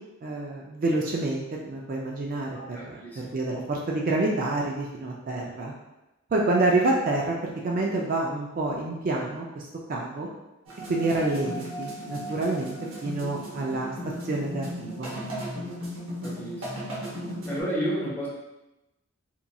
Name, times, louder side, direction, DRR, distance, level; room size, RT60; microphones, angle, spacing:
voice 1, 0.2-5.7 6.3-10.3 10.9-12.8 13.0-13.9 14.2-15.1, right 2 dB, 45° right, -2 dB, 0.3 m, -28 dB
voice 2, 2.5-3.2 16.2-16.8 17.5-18.3, right 1 dB, 10° left, -7 dB, 0.8 m, -32 dB
sound 1, 10.7-17.6, equal, 80° right, 0.8 m, -36 dB
2.9 x 2.5 x 2.2 m, 0.97 s
head